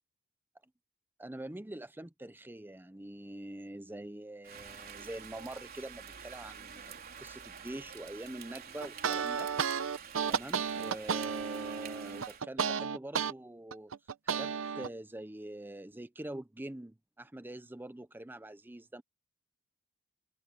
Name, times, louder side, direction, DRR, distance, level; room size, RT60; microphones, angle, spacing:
voice 1, 1.2-9.5 9.9-10.0 10.3-13.9 14.2-19.0, right 1 dB, 10° right, 0.6 m, -45 dB
Rain, 4.4-12.4, right 7 dB, 50° right, 4.0 m, -48 dB
sound 1, 8.8-13.3 13.7-14.9, right 6 dB, 70° right, 0.8 m, -33 dB
head